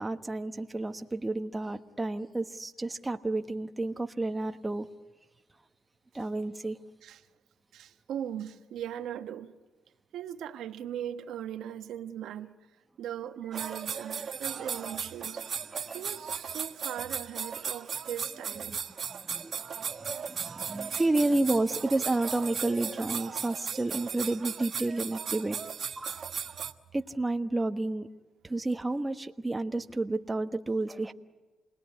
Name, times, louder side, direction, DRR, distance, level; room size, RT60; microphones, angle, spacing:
voice 1, 0.0-4.9 6.1-6.8 15.7-16.0 18.6-18.8 19.1-25.6 26.0-26.2 26.9-28.1 28.4-31.1, right 2 dB, 15° right, 1.2 m, -31 dB
voice 2, 7.7-9.5 10.1-12.5 13.0-15.4 15.9-18.8, right 10 dB, 80° right, 1.1 m, -39 dB
sound 1, 13.5-26.7, right 7 dB, 50° right, 1.2 m, -36 dB
28.5 x 20.0 x 9.7 m
cardioid pair, 90°, 0 cm